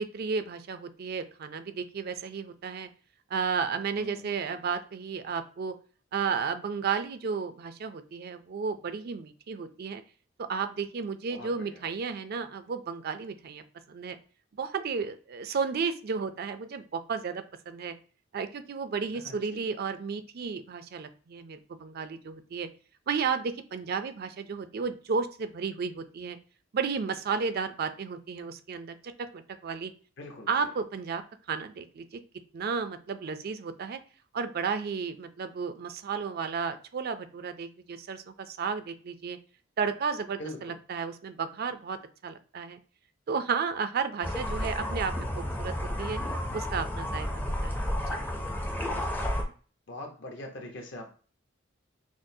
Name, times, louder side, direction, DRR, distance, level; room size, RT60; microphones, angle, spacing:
voice 1, 0.0-2.9 3.3-5.7 6.1-10.0 10.4-13.6 13.9-14.2 14.6-17.9 18.3-22.7 23.1-26.4 26.7-29.0 29.3-29.9 30.5-31.2 31.5-32.2 32.5-34.0 34.3-39.4 39.8-42.8 43.3-45.1 45.6-46.2 46.5-47.8 48.1-48.2, right 5 dB, 50° right, 10 dB, 0.4 m, -33 dB
voice 2, 4.0-4.3 11.3-11.8 19.1-19.7 30.2-30.5 40.4-40.8 49.4-49.5 49.9-51.1, left 1 dB, 60° left, 2 dB, 0.8 m, -42 dB
sound 1, 44.2-49.4, left 1 dB, 10° left, 0.5 m, -31 dB
6.1 x 2.0 x 2.7 m, 0.39 s
head